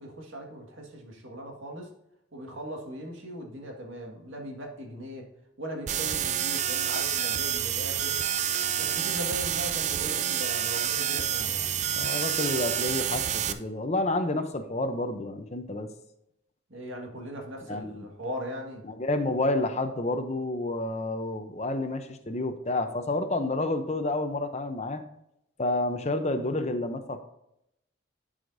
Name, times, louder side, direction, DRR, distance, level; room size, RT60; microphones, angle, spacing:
voice 1, 0.0-1.9 2.3-5.3 5.6-8.2 8.7-11.7 16.7-18.8, equal, 85° right, 1 dB, 1.8 m, -39 dB
sound 1, 5.9-13.5, right 9 dB, 35° right, 0.3 m, -28 dB
voice 2, 11.1-15.9 17.7-18.0 18.9-25.0 25.6-27.2, left 2 dB, 35° left, 8 dB, 0.7 m, -30 dB
11.5 x 4.9 x 2.7 m, 0.82 s
head